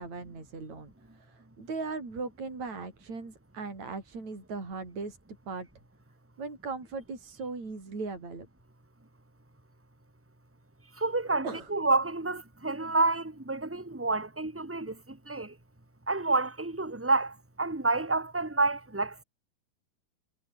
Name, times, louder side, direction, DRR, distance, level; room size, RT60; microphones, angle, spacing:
voice 1, 0.0-5.2 5.5-5.7 6.4-8.5 11.4-11.7, right 4 dB, 45° right, 8.1 m, -38 dB
voice 2, 11.0-11.4 11.7-15.5 16.1-19.2, right 3 dB, 5° right, 1.3 m, -29 dB
omnidirectional pair, 4.5 m